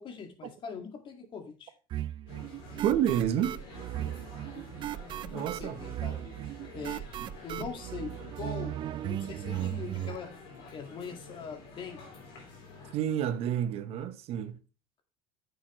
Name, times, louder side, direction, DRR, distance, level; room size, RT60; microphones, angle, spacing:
voice 1, 0.0-1.7 5.2-6.2 6.7-7.1 7.4-10.3 10.7-12.0, left 6 dB, 45° left, 2.0 m, -42 dB
sound 1, 1.9-10.2, right 13 dB, 40° right, 0.3 m, -37 dB
sound 2, 2.3-12.9, left 4 dB, 85° left, 3.2 m, -49 dB
voice 2, 2.8-3.6 5.3-5.8 7.2-7.3 7.6-7.7 12.9-14.6, right 10 dB, 55° right, 0.9 m, -29 dB
8.9 x 6.8 x 3.1 m
supercardioid pair, 110°, 12 cm